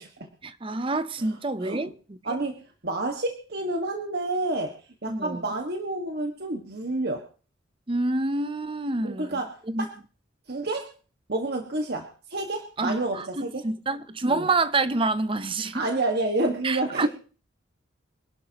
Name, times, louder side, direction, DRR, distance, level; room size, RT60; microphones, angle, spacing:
voice 1, 0.4-2.2 5.1-5.4 7.9-9.4 9.7-9.9 12.8-15.9 16.6-17.1, right 3 dB, 30° right, 0.7 m, -27 dB
voice 2, 2.2-2.5 2.8-4.7 5.0-7.2 9.0-9.5 9.8-9.9 10.5-10.9 11.3-13.6 14.3-14.5 15.7-17.1, right 2 dB, 55° right, 1.6 m, -29 dB
25.5 x 11.5 x 2.9 m
head